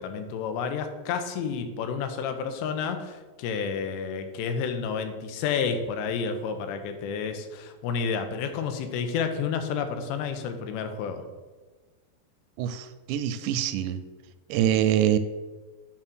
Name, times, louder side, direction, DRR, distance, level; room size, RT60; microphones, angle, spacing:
voice 1, 0.0-11.2, left 6 dB, 90° left, 7 dB, 3.1 m, -30 dB
voice 2, 12.6-14.0 14.5-15.2, right 11 dB, 85° right, 12 dB, 2.7 m, -24 dB
9.9 x 3.9 x 6.2 m, 1.3 s
omnidirectional pair, 4.9 m